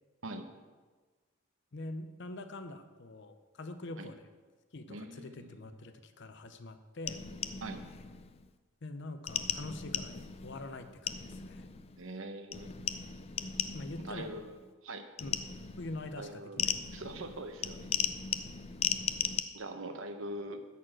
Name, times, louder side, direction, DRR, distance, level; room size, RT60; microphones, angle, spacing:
voice 1, 1.7-4.3 4.7-7.2 8.8-11.7 13.7-14.3 15.2-15.4 15.8-16.7, left 2 dB, 55° left, 9 dB, 0.7 m, -44 dB
voice 2, 4.9-5.6 7.6-7.8 12.0-12.7 14.0-15.1 16.2-16.6 16.9-17.9 19.5-20.6, right 1 dB, 70° right, 7 dB, 0.9 m, -42 dB
sound 1, 7.1-8.5 9.3-12.1 12.5-14.7 15.2-19.4, left 7 dB, 30° left, 0.4 m, -37 dB
11.0 x 4.3 x 7.6 m, 1.4 s
head